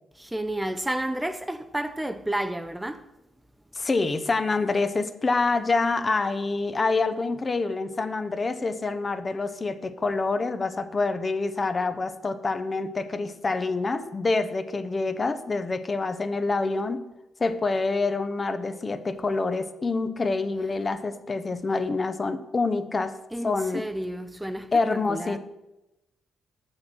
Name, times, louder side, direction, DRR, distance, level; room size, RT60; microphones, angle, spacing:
voice 1, 0.2-3.1 23.3-25.4, right 1 dB, 10° right, 0.6 m, -31 dB
voice 2, 3.7-17.0 17.4-23.1 23.4-23.8 24.7-25.4, left 3 dB, 35° left, 0.7 m, -26 dB
7.4 x 6.6 x 6.1 m
cardioid pair, 75°, 0 cm